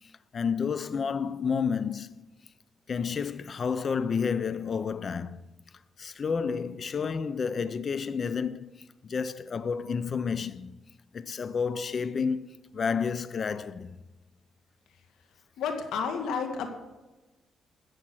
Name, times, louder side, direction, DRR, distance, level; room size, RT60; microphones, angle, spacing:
voice 1, 0.0-2.3 2.9-5.4 6.0-10.8 11.1-12.5 12.7-14.0, left 6 dB, 45° left, 0.7 m, -30 dB
voice 2, 15.6-16.7, left 6 dB, 80° left, 2.3 m, -31 dB
14.0 x 9.1 x 6.4 m
cardioid pair, 90°, 0 cm